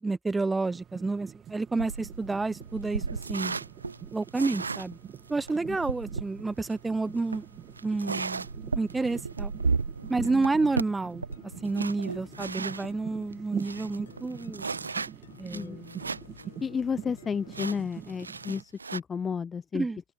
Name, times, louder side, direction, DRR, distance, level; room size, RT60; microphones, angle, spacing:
voice 1, 0.0-3.0 3.3-3.6 4.1-5.0 5.3-8.5 8.7-9.5 10.1-11.2 11.6-14.7 15.4-16.0 19.7-20.0, right 3 dB, 10° right, 1.9 m, -30 dB
sound 1, 0.7-18.6, right 9 dB, 25° right, 3.0 m, -46 dB
sound 2, 1.7-12.9 13.3-13.4 13.6-16.4 16.8-16.9 17.5-19.0, right 4 dB, 75° right, 3.0 m, -35 dB
sound 3, 11.3-17.8, left 8 dB, 70° left, 7.2 m, -51 dB
voice 2, 16.6-19.9, left 6 dB, 20° left, 0.8 m, -32 dB
open air
figure-of-eight pair, 90°, 0 cm